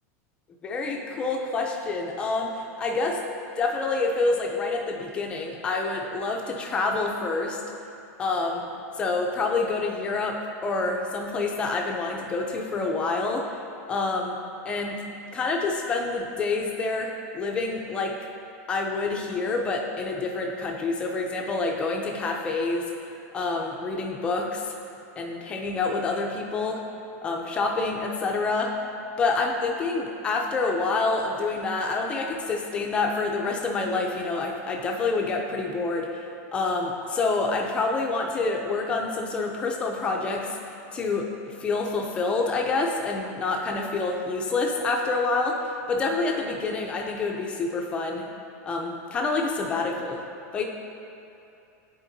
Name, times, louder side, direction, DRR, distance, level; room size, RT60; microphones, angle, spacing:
voice 1, 0.6-3.2 3.6-7.6 8.2-8.6 8.9-13.6 13.9-14.4 14.6-15.0 15.3-18.2 18.7-23.1 23.3-24.8 25.2-26.8 27.2-28.7 29.2-48.3 48.7-50.6, left 3 dB, 10° left, 1 dB, 0.4 m, -27 dB
10.0 x 4.2 x 2.6 m, 2.7 s
supercardioid pair, 180°, 9 cm